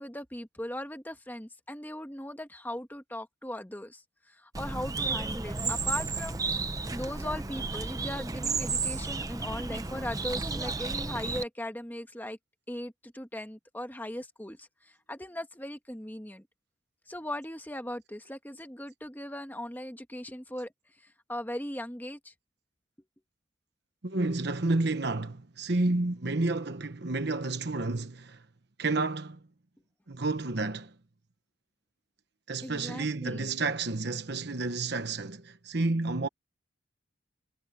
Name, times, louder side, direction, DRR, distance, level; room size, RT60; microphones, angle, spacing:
voice 1, 0.0-6.4 6.9-12.4 12.7-16.5 17.1-20.7 21.0-22.3 32.6-33.5, left 1 dB, 10° left, 1.5 m, -39 dB
Bird, 4.5-11.4, right 4 dB, 20° right, 0.7 m, -33 dB
voice 2, 24.0-28.4 28.8-29.4 30.1-30.9 32.5-36.3, right 2 dB, 55° right, 1.1 m, -30 dB
head